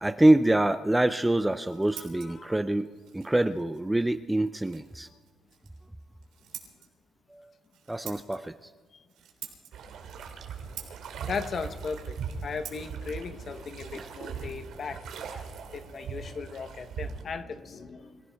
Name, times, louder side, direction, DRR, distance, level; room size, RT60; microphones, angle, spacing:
voice 1, 0.0-2.9 3.1-5.1 7.3-7.5 7.9-8.7 13.9-14.1 15.3-16.3, right 1 dB, 5° right, 0.4 m, -26 dB
Scissors, 1.4-14.9, right 10 dB, 85° right, 3.6 m, -50 dB
voice 2, 1.9-2.6 11.3-12.2 12.4-15.0 15.7-18.2, left 5 dB, 40° left, 1.0 m, -37 dB
sound 1, 9.7-17.2, right 6 dB, 65° right, 2.3 m, -40 dB
25.0 x 16.0 x 3.5 m
cardioid pair, 140°, 0 cm